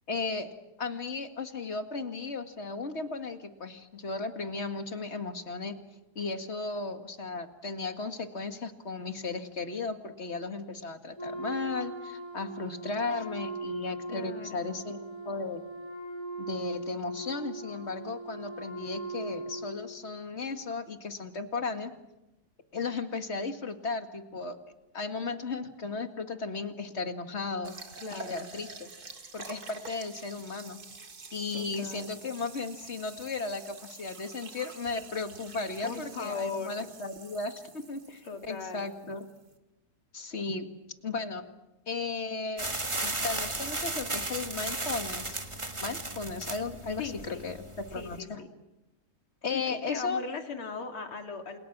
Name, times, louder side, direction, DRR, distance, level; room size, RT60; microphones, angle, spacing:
voice 1, 0.1-0.5 0.8-5.8 6.2-15.7 16.4-21.9 22.7-24.6 24.9-27.7 28.1-28.9 29.3-30.8 31.3-39.3 40.1-40.7 41.0-41.4 41.9-42.7 43.0-45.4 45.8-47.6 47.9-48.4 49.4-50.2, left 4 dB, 35° left, 7 dB, 2.1 m, -35 dB
Wind instrument woodwind instrument, 11.2-20.0, right 2 dB, 10° left, 6.0 m, -39 dB
voice 2, 14.1-14.8 28.0-28.5 31.5-32.2 35.8-36.7 38.2-38.9 47.0-47.5 47.9-48.5 49.5-51.6, left 5 dB, 80° left, 4 dB, 3.4 m, -39 dB
sound 1, 27.6-39.6, right 4 dB, 45° right, 2.8 m, -48 dB
sound 2, 42.6-48.2, right 2 dB, 15° right, 1.5 m, -35 dB
29.5 x 28.0 x 6.2 m, 0.96 s
omnidirectional pair, 2.3 m